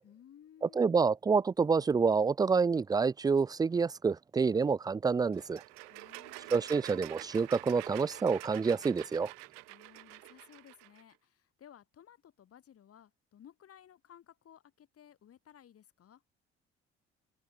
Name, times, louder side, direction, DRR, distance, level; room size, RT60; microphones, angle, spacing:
voice 1, 0.0-1.1 5.8-6.9 9.7-16.2, left 9 dB, 50° left, 3.1 m, -58 dB
voice 2, 0.8-5.6 6.5-9.3, right 5 dB, 15° right, 0.3 m, -28 dB
sound 1, 5.3-11.0, right 40 dB or more, 75° right, 3.1 m, -47 dB
hypercardioid pair, 55°, 30 cm